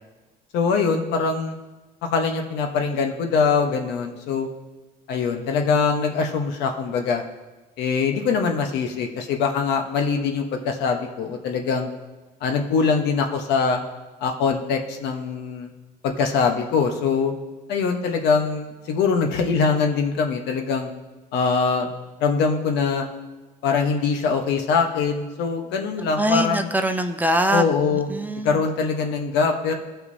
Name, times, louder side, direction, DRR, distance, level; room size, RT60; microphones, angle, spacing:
voice 1, 0.5-1.6 2.0-4.5 5.1-7.2 7.8-11.9 12.4-13.8 14.2-15.7 16.0-17.3 17.7-20.9 21.3-21.9 22.2-23.1 23.6-26.7 27.5-28.1 28.4-29.7, left 5 dB, 85° left, 4 dB, 1.1 m, -23 dB
voice 2, 26.2-27.6 27.9-28.6, right 1 dB, 10° right, 6 dB, 0.6 m, -23 dB
17.0 x 5.8 x 2.7 m, 1.2 s
cardioid pair, 110°, 17 cm